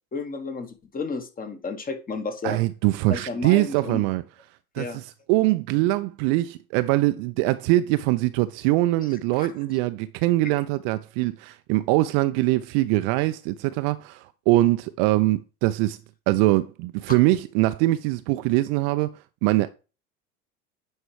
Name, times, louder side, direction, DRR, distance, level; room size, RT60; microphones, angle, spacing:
voice 1, 0.1-2.6 3.1-4.0 4.8-5.0 9.4-9.5, left 4 dB, 20° left, 1.2 m, -32 dB
voice 2, 2.4-4.2 4.7-16.0 16.3-19.7, right 18 dB, 45° right, 0.4 m, -23 dB
9.6 x 4.4 x 3.2 m
hypercardioid pair, 85°, 44 cm